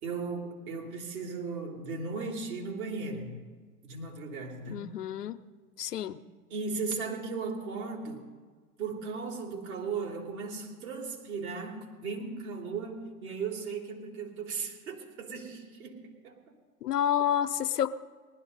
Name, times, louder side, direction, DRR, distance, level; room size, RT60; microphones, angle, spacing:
voice 1, 0.0-3.4 3.8-4.9 5.8-6.0 6.5-8.2 8.8-16.4, right 4 dB, 65° right, 0 dB, 3.5 m, -37 dB
voice 2, 4.7-5.4 5.8-6.2 16.8-17.9, left 9 dB, 90° left, 12 dB, 0.8 m, -29 dB
19.5 x 12.5 x 4.0 m, 1.5 s
hypercardioid pair, 120°, 46 cm